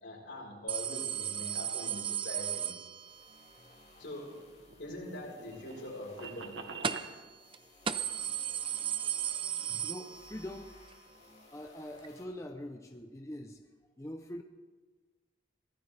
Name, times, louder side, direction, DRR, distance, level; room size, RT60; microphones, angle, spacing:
voice 1, 0.0-2.7 4.0-4.4 4.8-6.6, left 1 dB, 65° left, -2 dB, 4.5 m, -43 dB
sound 1, 0.7-3.4 6.8-7.2 7.5-7.6 7.9-10.6 10.9-11.0 12.0-12.1, right 9 dB, 25° right, 0.5 m, -35 dB
sound 2, 2.9-12.2, left 2 dB, 35° left, 2.8 m, -59 dB
sound 3, 4.0-7.1, right 5 dB, 70° right, 1.5 m, -45 dB
voice 2, 7.6-8.0 9.3-10.8 11.5-13.6 14.0-14.4, left 1 dB, 15° left, 4 dB, 0.6 m, -44 dB
23.5 x 16.0 x 3.4 m, 1.4 s
head